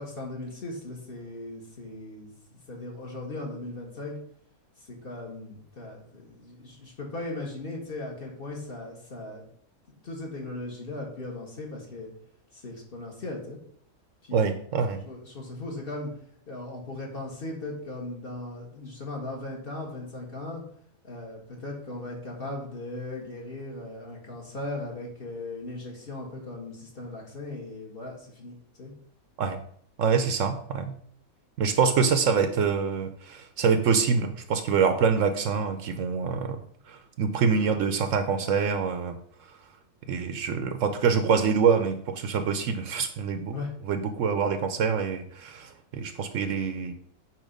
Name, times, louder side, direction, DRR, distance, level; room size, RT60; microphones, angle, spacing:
voice 1, 0.0-4.2 4.8-9.5 10.0-12.1 12.5-13.6 14.2-14.6 15.0-16.1 16.5-20.6 21.0-28.9 43.5-43.7, left 2 dB, 40° left, -1 dB, 1.6 m, -38 dB
voice 2, 14.3-15.0 29.4-29.6 30.0-30.9 31.6-36.6 36.9-39.2 40.1-43.6 43.9-46.9, right 6 dB, 70° right, 8 dB, 0.9 m, -25 dB
8.6 x 2.9 x 5.1 m, 0.63 s
omnidirectional pair, 1.5 m